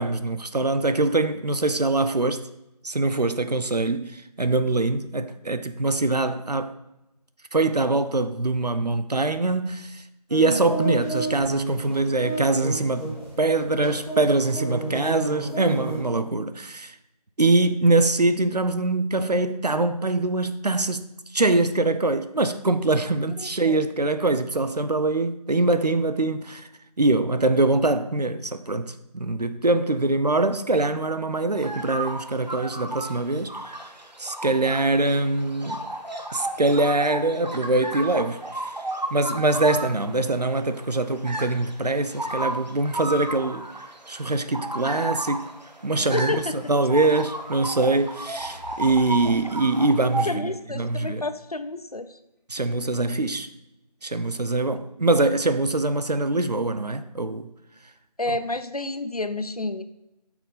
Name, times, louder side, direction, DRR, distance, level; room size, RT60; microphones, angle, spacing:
voice 1, 0.0-2.5 2.8-6.7 7.5-10.0 10.3-17.0 17.4-21.1 21.3-26.7 27.0-33.8 34.2-35.8 36.3-38.7 39.1-43.7 44.1-45.5 45.8-51.2 52.5-53.5 54.0-57.5 58.3-58.4, right 2 dB, 75° right, 0.7 m, -23 dB
sound 1, 10.3-16.0, right 2 dB, 35° right, 3.0 m, -32 dB
voice 2, 23.4-23.8 46.1-46.5 50.3-52.1 58.2-59.8, left 2 dB, 60° left, 0.7 m, -30 dB
sound 2, 31.5-50.3, right 1 dB, 90° right, 1.3 m, -34 dB
sound 3, 46.3-51.7, left 2 dB, 25° left, 1.7 m, -48 dB
8.8 x 6.0 x 4.1 m
figure-of-eight pair, 175°, 21 cm